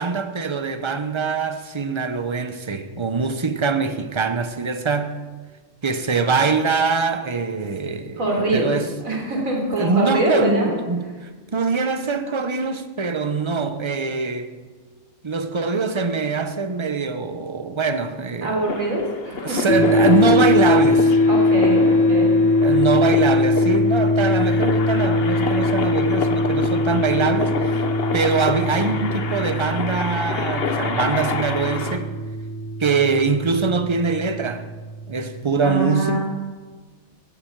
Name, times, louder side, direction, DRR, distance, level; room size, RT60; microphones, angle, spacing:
voice 1, 0.0-5.2 5.8-8.9 9.8-11.2 11.5-14.5 15.2-18.6 19.4-21.2 22.6-27.8 28.1-32.2 32.8-34.7 35.1-36.3, right 4 dB, 25° right, 0.8 m, -23 dB
voice 2, 8.2-8.7 9.0-10.7 18.4-19.7 21.3-22.3 35.6-36.3, right 2 dB, 75° right, 4.2 m, -23 dB
sound 1, 18.7-32.0, left 4 dB, 50° left, 1.2 m, -29 dB
sound 2, 19.7-34.9, left 2 dB, 80° left, 3.7 m, -21 dB
18.0 x 15.0 x 4.7 m
omnidirectional pair, 1.4 m